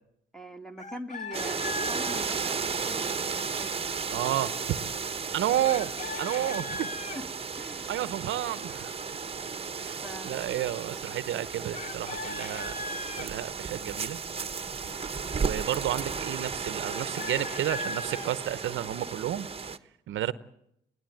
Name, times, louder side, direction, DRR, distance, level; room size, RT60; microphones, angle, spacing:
voice 1, 0.3-3.2 6.4-6.9 7.2-7.3 7.5-8.0 10.0-10.4 10.9-11.0, equal, ahead, 1.9 m, -42 dB
Chicken rooster, 0.8-2.3 5.6-7.2 11.7-13.3 16.8-18.3, left 3 dB, 35° left, 2.2 m, -38 dB
sound 1, 1.3-19.8, right 5 dB, 30° right, 1.2 m, -34 dB
voice 2, 4.1-4.8 5.3-5.9 6.2-6.9 7.9-8.9 9.8-12.7 13.2-14.2 15.4-19.5 20.1-20.3, right 12 dB, 75° right, 0.8 m, -31 dB
21.0 x 17.5 x 9.1 m
cardioid pair, 90°, 20 cm